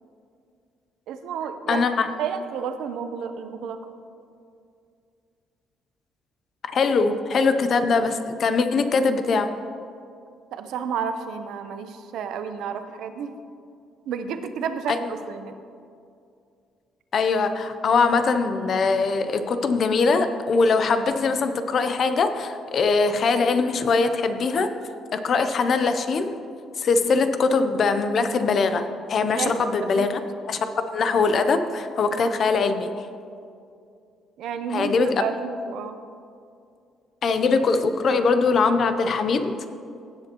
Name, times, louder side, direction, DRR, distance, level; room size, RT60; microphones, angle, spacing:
voice 1, 1.1-1.9 2.2-3.9 10.5-13.3 14.1-15.5 29.3-30.1 34.4-36.0, right 6 dB, 75° right, 9 dB, 0.7 m, -31 dB
voice 2, 1.7-2.1 6.7-9.5 14.9-15.0 17.1-24.7 25.1-26.3 26.8-30.2 30.5-32.9 34.7-35.2 37.2-39.6, left 4 dB, 45° left, 9 dB, 0.6 m, -22 dB
16.5 x 7.7 x 3.0 m, 2.4 s
cardioid pair, 145°, 0 cm